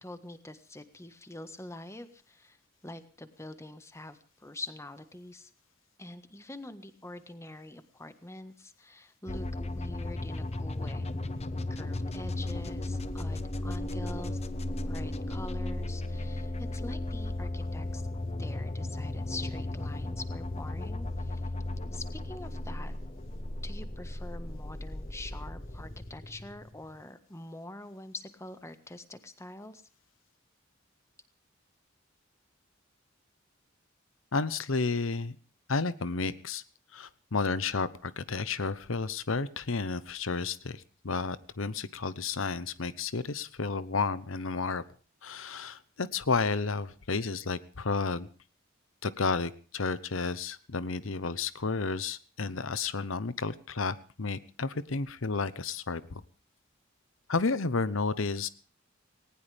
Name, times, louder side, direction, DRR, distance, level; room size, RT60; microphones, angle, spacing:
voice 1, 0.0-2.6 2.8-5.5 6.0-11.1 11.7-14.4 14.8-18.0 18.4-21.4 21.9-22.9 23.6-29.8, left 2 dB, 15° left, 10 dB, 1.5 m, -45 dB
sound 1, 9.3-27.0, left 2 dB, 30° left, 1.1 m, -35 dB
voice 2, 34.3-35.4 35.7-36.6 36.9-44.8 45.2-48.3 49.0-56.2 57.3-58.5, left 4 dB, 80° left, 15 dB, 1.0 m, -31 dB
19.5 x 19.0 x 3.5 m, 0.40 s
head